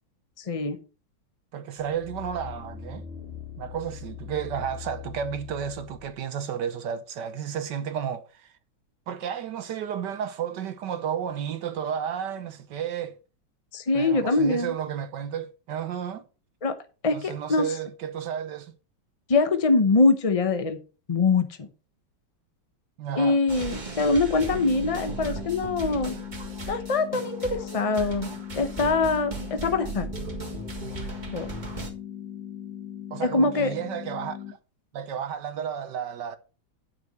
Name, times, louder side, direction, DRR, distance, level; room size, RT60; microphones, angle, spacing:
voice 1, 0.4-0.8 13.7-14.7 16.6-16.8 17.0-17.6 19.3-20.8 21.1-21.7 23.1-26.1 26.7-28.3 28.6-30.1 31.3-31.5 33.2-33.7, left 3 dB, 50° left, 0.4 m, -23 dB
voice 2, 1.5-3.0 3.6-8.5 9.1-13.1 13.9-16.2 17.1-18.7 23.0-23.4 33.1-34.6 34.9-36.4, right 8 dB, 65° right, 1.3 m, -32 dB
sound 1, 1.8-6.2 6.7-6.8, left 9 dB, 35° left, 1.9 m, -41 dB
sound 2, 23.5-31.9, right 4 dB, 25° right, 1.8 m, -37 dB
sound 3, 24.5-34.5, left 10 dB, 70° left, 2.3 m, -39 dB
9.4 x 5.9 x 5.5 m
omnidirectional pair, 2.1 m